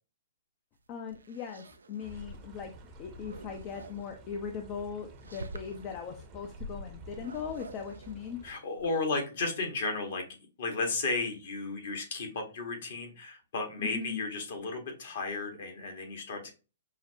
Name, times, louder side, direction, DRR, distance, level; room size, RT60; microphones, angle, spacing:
sound 1, 0.8-2.4 2.7-4.2 5.0-6.0 7.1-9.2, right 3 dB, 80° right, 0.4 m, -48 dB
voice 1, 0.9-2.7 3.0-8.4 13.8-14.2, left 6 dB, 35° left, 5 dB, 0.5 m, -39 dB
sound 2, 2.0-8.5, equal, 30° right, 0.7 m, -49 dB
voice 2, 8.4-10.3 10.6-16.5, left 3 dB, 60° left, 4 dB, 1.3 m, -34 dB
5.6 x 2.0 x 2.6 m, 0.32 s
figure-of-eight pair, 120°, 0 cm